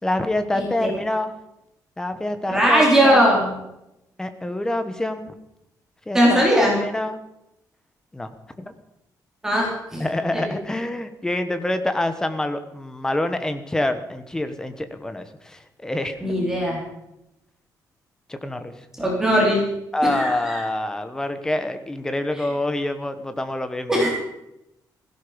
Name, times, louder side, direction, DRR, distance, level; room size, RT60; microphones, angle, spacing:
voice 1, 0.0-1.3 2.0-3.3 4.2-5.3 6.1-7.2 8.1-8.3 8.6-8.7 10.0-16.4 18.3-18.7 19.9-24.0, left 1 dB, 10° left, 9 dB, 1.2 m, -26 dB
voice 2, 0.5-0.9 2.5-3.5 6.1-6.8 9.4-10.0 10.3-10.4 16.2-16.8 19.0-19.7 20.1-20.6 23.9-24.1, equal, 10° right, -3 dB, 4.0 m, -19 dB
16.5 x 16.0 x 5.2 m, 0.86 s
cardioid pair, 175°, 7 cm